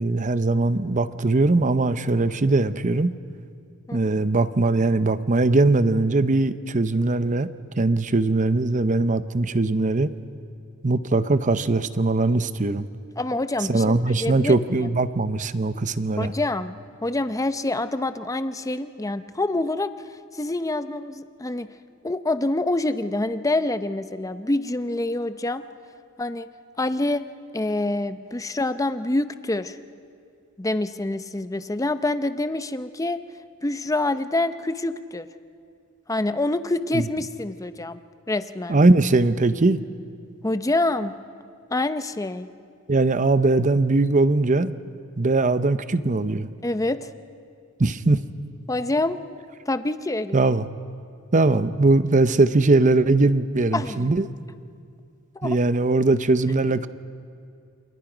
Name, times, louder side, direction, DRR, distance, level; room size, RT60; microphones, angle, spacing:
voice 1, 0.0-3.1 3.9-7.5 7.8-10.1 10.8-12.9 13.7-16.3 36.9-37.0 38.7-39.8 42.9-44.7 45.2-46.5 47.8-48.2 50.3-50.7 51.3-54.3 55.4-56.9, right 2 dB, 35° right, 13 dB, 0.7 m, -20 dB
voice 2, 13.2-13.8 14.2-14.6 16.2-19.9 20.3-21.7 22.0-25.7 26.2-26.5 26.8-27.3 27.5-29.8 30.6-33.2 33.6-35.3 36.1-38.0 38.3-38.8 40.4-41.1 41.7-42.5 46.6-47.1 48.7-49.2 49.7-50.5 53.7-54.1 55.3-55.6, left 2 dB, 15° left, 11 dB, 0.6 m, -26 dB
28.5 x 27.5 x 5.1 m, 2.3 s
head